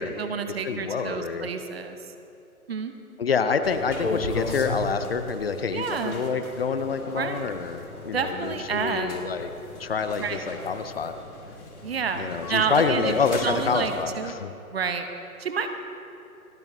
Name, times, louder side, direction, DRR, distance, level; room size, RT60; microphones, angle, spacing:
voice 1, 0.0-2.0 2.7-2.9 5.7-6.2 7.2-7.5 8.1-9.1 10.2-10.4 11.8-14.4 14.7-15.1 15.4-15.7, right 6 dB, 45° right, 7 dB, 1.0 m, -29 dB
voice 2, 0.6-1.5 3.2-9.5 9.8-11.1 12.2-14.5, left 5 dB, 40° left, 10 dB, 0.7 m, -27 dB
sound 1, 3.6-14.0, left 2 dB, 75° left, 2.8 m, -37 dB
29.0 x 10.5 x 2.8 m, 2.9 s
figure-of-eight pair, 140°, 44 cm